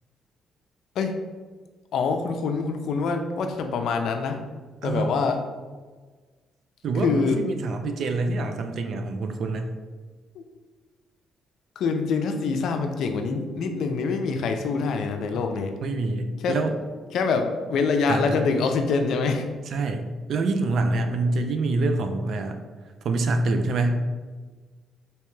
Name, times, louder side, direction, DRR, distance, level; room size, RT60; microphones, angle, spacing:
voice 1, 1.9-4.4 4.8-5.4 7.0-7.4 10.4-10.5 11.8-15.7 16.4-16.6 17.1-19.5, left 4 dB, 75° left, 6 dB, 0.4 m, -25 dB
voice 2, 4.8-5.2 6.8-9.7 15.8-16.7 18.1-18.4 19.7-22.6 23.0-24.0, right 3 dB, 65° right, 6 dB, 0.4 m, -26 dB
3.3 x 2.8 x 3.1 m, 1.4 s
cardioid pair, 90°, 0 cm